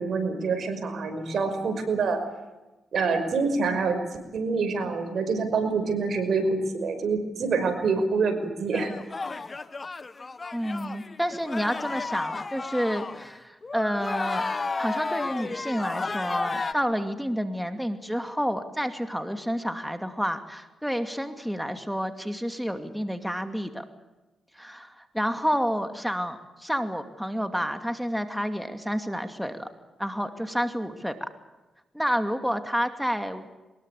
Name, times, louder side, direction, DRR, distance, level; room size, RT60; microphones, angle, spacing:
voice 1, 0.0-2.2 2.9-4.0 4.3-8.9, right 4 dB, 70° right, 8 dB, 5.5 m, -26 dB
sound 1, 8.7-13.3 13.6-16.7, left 3 dB, 35° left, 1.6 m, -32 dB
voice 2, 10.5-14.4 14.8-23.8 24.5-29.7 30.0-31.3 31.9-33.5, equal, ahead, 8 dB, 2.5 m, -29 dB
23.5 x 21.0 x 8.4 m, 1.1 s
cardioid pair, 65°, 0 cm